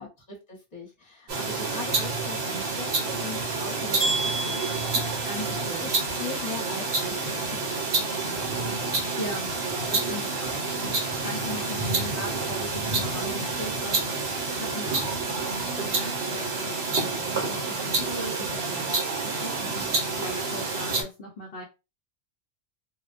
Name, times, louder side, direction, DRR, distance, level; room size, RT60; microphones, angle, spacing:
voice 1, 0.0-5.9 6.2-9.6 11.3-11.8 19.6-20.0, left 4 dB, 35° left, -1 dB, 1.0 m, -41 dB
sound 1, 1.3-21.0, right 3 dB, 60° right, 1.0 m, -28 dB
Hand Bells Low-C Single, 4.0-6.0, right 2 dB, 5° left, 0.4 m, -31 dB
voice 2, 5.2-5.9 9.1-19.8 20.2-21.6, equal, 55° left, -2 dB, 0.8 m, -39 dB
2.4 x 2.2 x 2.4 m, 0.27 s
omnidirectional pair, 1.3 m